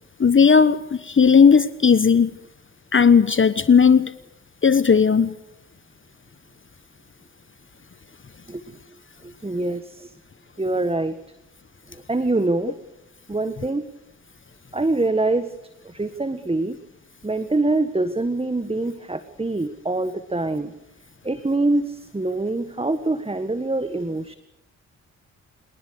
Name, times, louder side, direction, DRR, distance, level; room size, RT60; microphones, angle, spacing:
voice 1, 0.2-2.3 2.9-4.1 4.6-5.3, left 6 dB, 35° left, 14 dB, 1.1 m, -15 dB
voice 2, 8.5-8.8 9.2-10.1 10.6-11.1 11.9-12.8 13.3-13.8 14.7-15.5 15.8-16.8 17.2-20.7 21.2-24.3, right 2 dB, 15° right, 11 dB, 1.6 m, -24 dB
27.0 x 19.5 x 6.7 m, 0.85 s
hypercardioid pair, 45°, 35 cm